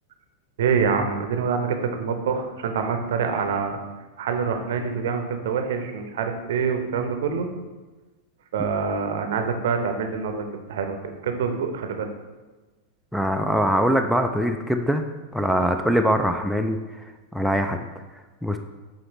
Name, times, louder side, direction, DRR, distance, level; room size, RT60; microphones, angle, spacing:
voice 1, 0.6-3.8 4.2-7.5 8.5-11.0 11.2-12.1, right 6 dB, 60° right, 6 dB, 0.7 m, -25 dB
voice 2, 13.1-15.0 15.3-17.1 17.3-17.8 18.4-18.6, equal, ahead, 6 dB, 0.4 m, -22 dB
7.7 x 4.2 x 3.0 m, 1.2 s
figure-of-eight pair, 90°, 0 cm